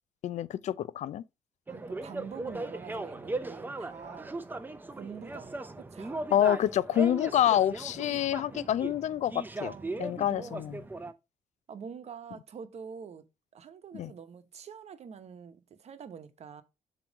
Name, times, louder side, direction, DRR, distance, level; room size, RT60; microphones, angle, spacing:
voice 1, 0.2-1.2 6.3-9.7 10.0-10.8 13.9-14.1, left 11 dB, 60° left, 0.4 m, -27 dB
sound 1, 1.7-11.1, right 2 dB, 15° right, 0.6 m, -38 dB
voice 2, 1.7-4.4 4.9-6.2 8.5-8.6 9.6-10.9 11.7-13.2 13.5-16.6, right 6 dB, 55° right, 1.0 m, -46 dB
7.1 x 3.1 x 5.1 m
cardioid pair, 110°, 13 cm